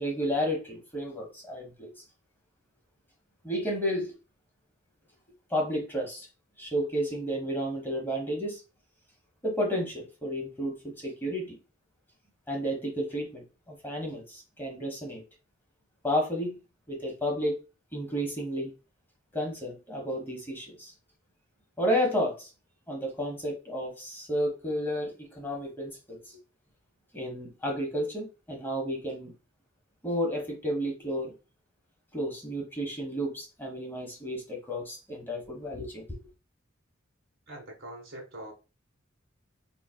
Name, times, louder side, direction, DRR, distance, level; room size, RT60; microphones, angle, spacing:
voice 1, 0.0-1.9 3.4-4.1 5.5-6.3 6.6-8.6 9.4-11.6 12.5-15.2 16.0-16.6 16.9-17.6 17.9-18.7 19.3-20.9 21.8-22.5 22.9-26.4 27.1-29.3 30.0-31.3 32.1-36.2, equal, 10° left, 0.9 m, -32 dB
voice 2, 37.5-38.5, right 1 dB, 70° right, 1.4 m, -43 dB
3.9 x 2.6 x 2.2 m
head